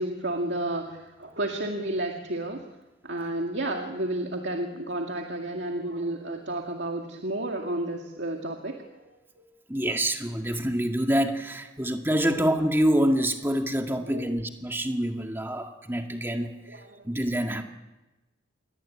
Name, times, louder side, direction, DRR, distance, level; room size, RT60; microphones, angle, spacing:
voice 1, 0.0-2.6 3.0-9.5 14.1-14.3 16.3-17.0, right 1 dB, 60° right, 2 dB, 2.3 m, -32 dB
voice 2, 9.7-17.6, equal, 10° right, 4 dB, 2.0 m, -26 dB
28.0 x 22.5 x 8.7 m, 1.1 s
head